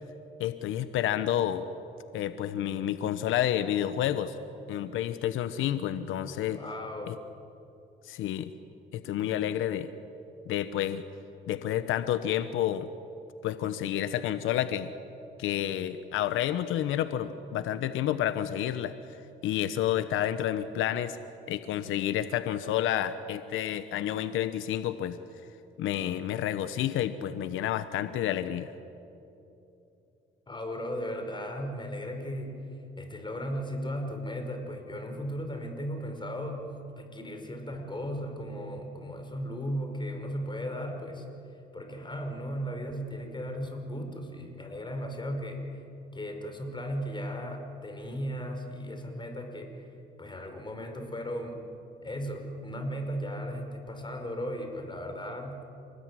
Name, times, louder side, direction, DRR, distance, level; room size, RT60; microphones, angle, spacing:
voice 1, 0.4-1.6 2.1-4.4 4.7-6.6 7.1-7.2 8.0-8.5 8.9-9.9 10.5-11.0 11.5-12.9 13.4-14.9 15.4-18.9 19.4-21.2 21.5-25.2 25.8-28.7, left 11 dB, 90° left, 12 dB, 1.0 m, -29 dB
voice 2, 6.5-7.2 30.5-32.6 33.0-36.7 37.0-41.3 41.7-45.7 46.1-49.8 50.2-51.6 52.0-55.6, equal, 25° left, 4 dB, 5.2 m, -36 dB
28.5 x 20.0 x 9.7 m, 2.8 s
cardioid pair, 90°, 20 cm